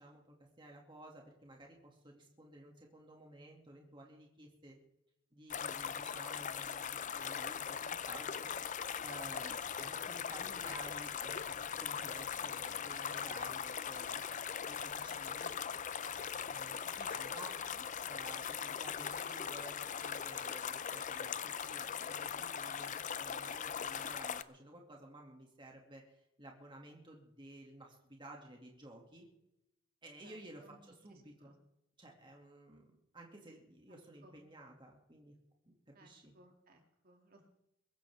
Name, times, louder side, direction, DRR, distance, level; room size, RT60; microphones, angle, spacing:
voice 1, 0.0-4.8 5.3-8.5 9.0-14.2 14.7-15.5 16.5-29.3 30.0-31.6 32.0-35.3 35.6-36.3, right 1 dB, 20° right, 0 dB, 2.4 m, -54 dB
sound 1, 5.5-24.4, left 7 dB, 35° left, 0.5 m, -40 dB
voice 2, 30.2-30.8 31.1-31.5 33.9-34.4 35.9-37.5, right 1 dB, 45° right, 3 dB, 2.6 m, -63 dB
22.5 x 14.0 x 3.6 m, 0.83 s
head